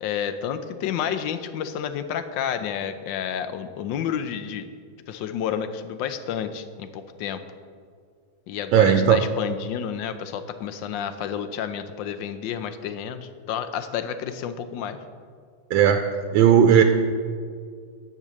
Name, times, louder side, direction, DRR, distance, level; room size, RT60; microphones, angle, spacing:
voice 1, 0.0-4.7 5.1-7.4 8.5-15.0, left 8 dB, 80° left, 10 dB, 1.3 m, -30 dB
voice 2, 8.7-9.2 15.7-16.0 16.3-16.8, right 9 dB, 90° right, 6 dB, 1.4 m, -16 dB
10.5 x 6.8 x 6.3 m, 2.1 s
omnidirectional pair, 2.1 m